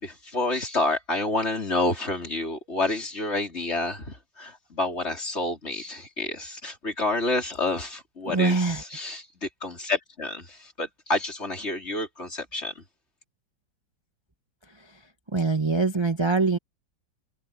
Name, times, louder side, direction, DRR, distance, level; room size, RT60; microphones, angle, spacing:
voice 1, 0.0-12.8, left 2 dB, 35° left, 4.3 m, -29 dB
voice 2, 8.3-8.8 15.3-16.6, right 3 dB, 15° right, 1.2 m, -23 dB
omnidirectional pair, 1.9 m